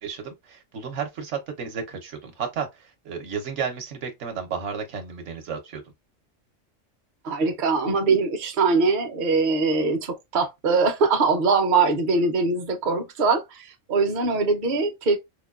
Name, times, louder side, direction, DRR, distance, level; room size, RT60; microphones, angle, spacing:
voice 1, 0.0-5.8, right 6 dB, 65° right, 1.1 m, -32 dB
voice 2, 7.2-15.2, right 4 dB, 45° right, 0.7 m, -22 dB
4.9 x 2.2 x 2.3 m
omnidirectional pair, 1.4 m